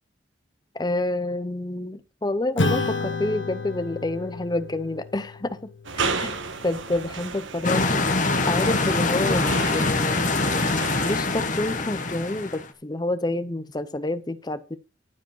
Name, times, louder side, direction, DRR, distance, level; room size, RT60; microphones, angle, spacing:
voice 1, 0.7-5.5 6.0-6.3 6.6-7.8 8.5-10.4 11.0-14.8, left 2 dB, 20° left, 13 dB, 0.6 m, -28 dB
Acoustic guitar / Strum, 2.6-7.4, left 3 dB, 80° left, 1.4 m, -31 dB
sound 1, 5.8-11.2, right 4 dB, 85° right, 1.4 m, -32 dB
sound 2, 7.6-12.7, left 3 dB, 40° left, 1.2 m, -24 dB
11.5 x 5.0 x 5.4 m, 0.31 s
head